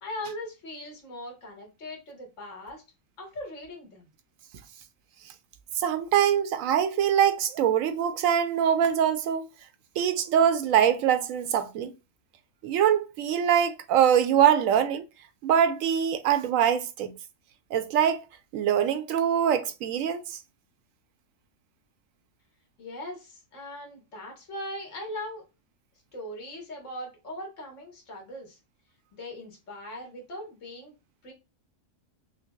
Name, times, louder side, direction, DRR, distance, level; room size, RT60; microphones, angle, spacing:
voice 1, 0.0-2.8 3.2-4.1 22.8-25.4 26.1-28.6 29.1-30.9 31.2-31.3, left 1 dB, 65° left, 1.7 m, -40 dB
voice 2, 5.8-9.5 10.0-11.9 12.6-15.0 15.4-17.1 17.7-18.2 18.5-20.4, right 9 dB, 80° right, 1.0 m, -23 dB
5.7 x 2.0 x 2.3 m
omnidirectional pair, 1.4 m